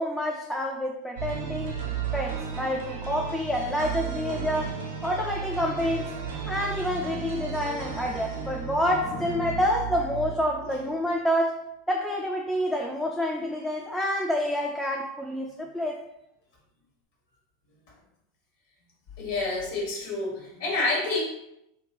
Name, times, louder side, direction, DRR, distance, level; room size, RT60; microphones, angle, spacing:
voice 1, 0.0-1.7 2.1-6.1 6.5-16.0, equal, 5° left, 0 dB, 0.3 m, -28 dB
sound 1, 1.2-11.0, right 6 dB, 70° right, 0.5 m, -34 dB
voice 2, 19.2-21.2, left 2 dB, 65° left, -2 dB, 1.2 m, -28 dB
2.8 x 2.6 x 2.9 m, 0.83 s
figure-of-eight pair, 85°, 0 cm